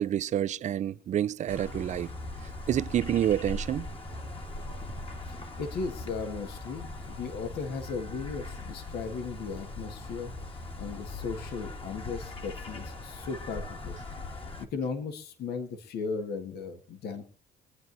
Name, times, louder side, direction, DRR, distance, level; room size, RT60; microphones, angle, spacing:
voice 1, 0.0-2.1 2.7-3.9, right 10 dB, 45° right, 0.5 m, -28 dB
sound 1, 1.5-14.7, left 2 dB, 35° left, 1.7 m, -40 dB
voice 2, 5.3-14.0 14.6-17.3, left 5 dB, 70° left, 1.7 m, -37 dB
25.0 x 9.3 x 2.7 m
cardioid pair, 110°, 17 cm